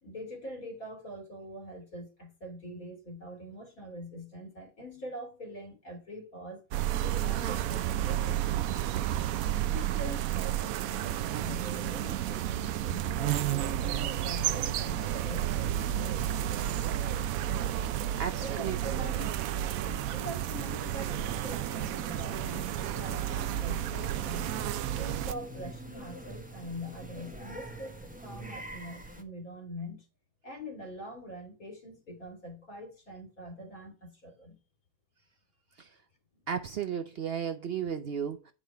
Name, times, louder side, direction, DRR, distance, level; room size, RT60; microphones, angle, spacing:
voice 1, 0.0-6.6 7.0-8.5 9.6-16.2 18.3-24.5 24.9-30.0 30.4-34.6 36.3-36.4, equal, 75° left, 3.2 m, -44 dB
sound 1, 6.7-25.3, right 12 dB, 80° right, 1.0 m, -31 dB
voice 2, 17.8-19.0 35.8-36.0 36.5-38.5, right 8 dB, 60° right, 0.7 m, -35 dB
sound 2, 20.5-29.2, right 1 dB, 5° right, 0.9 m, -44 dB
8.4 x 5.0 x 4.4 m
omnidirectional pair, 1.5 m